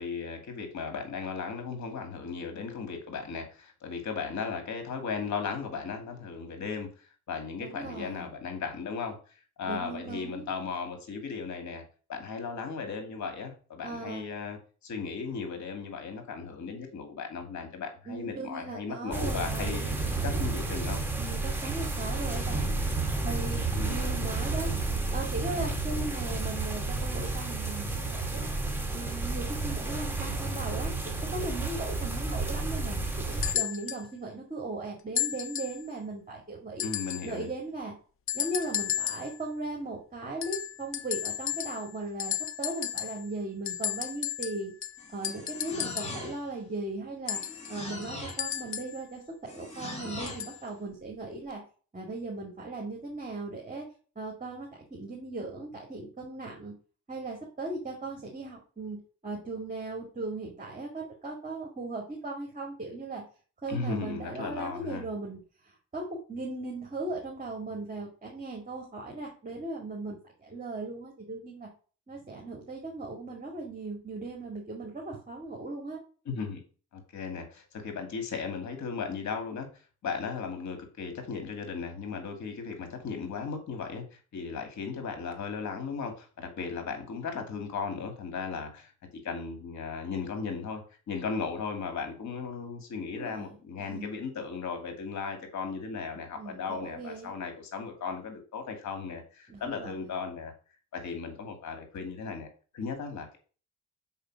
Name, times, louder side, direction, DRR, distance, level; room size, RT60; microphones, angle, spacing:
voice 1, 0.0-9.2 9.6-20.0 20.2-21.0 23.7-24.1 36.8-37.5 63.7-65.1 76.3-76.6 76.9-79.7 80.0-100.5 100.9-102.5 102.7-103.4, left 5 dB, 65° left, 5 dB, 2.4 m, -36 dB
voice 2, 7.6-8.3 9.7-10.5 13.8-14.2 18.1-19.9 21.2-22.7 23.2-23.6 23.9-24.7 25.1-28.4 28.9-36.8 37.2-37.9 38.3-44.7 45.1-47.4 47.7-51.6 51.9-53.8 54.2-56.7 57.1-59.0 59.2-63.2 63.6-65.4 65.9-71.7 72.1-76.0 93.1-93.6 93.9-94.1 96.4-97.3 99.5-100.1, right 2 dB, 25° right, -1 dB, 2.3 m, -38 dB
sound 1, 19.1-33.5, right 3 dB, 5° right, 1.8 m, -31 dB
sound 2, 33.4-34.1 35.2-35.8 36.8-37.3 38.3-39.4 40.4-41.9 42.2-43.3 43.7-46.2 47.3-49.0 50.3-50.6 51.5-51.6, left 11 dB, 45° left, 0.6 m, -33 dB
sound 3, 45.0-46.6 47.3-48.5 49.5-50.5, left 2 dB, 20° left, 2.6 m, -41 dB
5.5 x 4.9 x 6.2 m, 0.38 s
cardioid pair, 90°, 30 cm